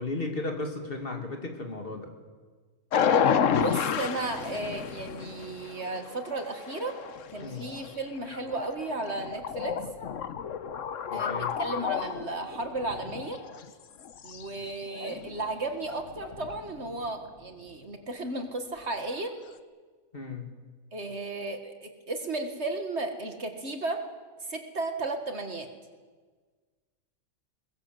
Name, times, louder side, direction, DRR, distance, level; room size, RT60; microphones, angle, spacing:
voice 1, 0.0-2.1 7.4-7.7 11.1-11.5 20.1-20.5, left 3 dB, 40° left, 3 dB, 2.7 m, -35 dB
sound 1, 2.9-13.7 14.0-17.1, left 7 dB, 60° left, 1.2 m, -31 dB
voice 2, 3.5-7.0 7.3-9.8 11.1-13.4 14.2-19.3 20.9-24.0 24.4-25.7, right 2 dB, 50° right, 6 dB, 2.0 m, -34 dB
21.5 x 21.0 x 7.7 m, 1.5 s
omnidirectional pair, 1.5 m